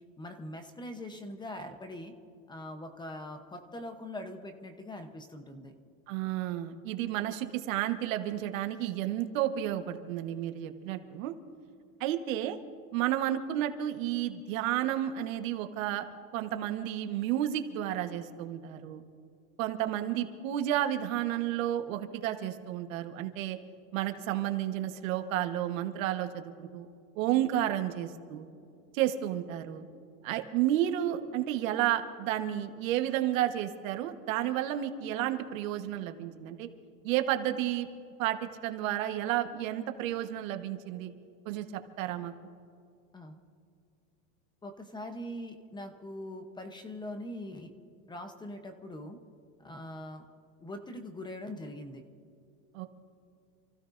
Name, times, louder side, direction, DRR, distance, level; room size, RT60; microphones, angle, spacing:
voice 1, 0.2-2.1 2.5-5.7 43.1-43.4 44.6-47.7 48.1-49.2 49.6-50.2 50.6-52.0, left 1 dB, 10° left, 6 dB, 0.9 m, -42 dB
voice 2, 6.1-11.3 12.0-12.6 12.9-16.1 16.3-19.0 19.6-23.6 23.9-26.9 27.2-28.5 28.9-29.8 30.2-36.7 37.0-37.9 38.2-41.1 41.4-42.3 52.7-52.9, right 12 dB, 75° right, 7 dB, 1.4 m, -31 dB
28.5 x 15.5 x 2.6 m, 2.4 s
supercardioid pair, 155°, 40 cm